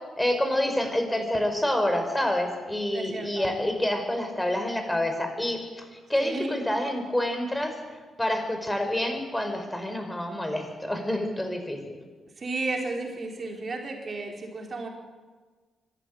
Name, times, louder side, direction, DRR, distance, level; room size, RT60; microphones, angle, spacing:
voice 1, 0.2-5.6 5.9-7.7 8.2-11.9, left 1 dB, 10° left, 5 dB, 5.4 m, -27 dB
voice 2, 2.9-3.5 6.2-6.6 12.4-14.9, right 3 dB, 45° right, 2 dB, 4.4 m, -33 dB
24.5 x 12.0 x 9.2 m, 1.4 s
hypercardioid pair, 40°, 0 cm